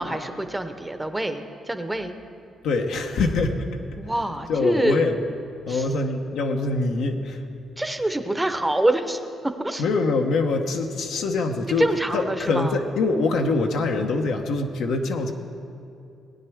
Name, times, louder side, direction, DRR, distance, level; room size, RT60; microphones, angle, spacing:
voice 1, 0.0-2.2 4.0-5.0 5.7-5.8 7.8-9.8 11.8-12.7, right 1 dB, 10° right, 8 dB, 0.7 m, -26 dB
voice 2, 2.6-4.1 4.5-5.2 5.6-7.4 9.8-11.9 12.1-15.3, left 3 dB, 80° left, 4 dB, 0.9 m, -24 dB
18.5 x 9.6 x 3.5 m, 2.5 s
cardioid pair, 90°, 0 cm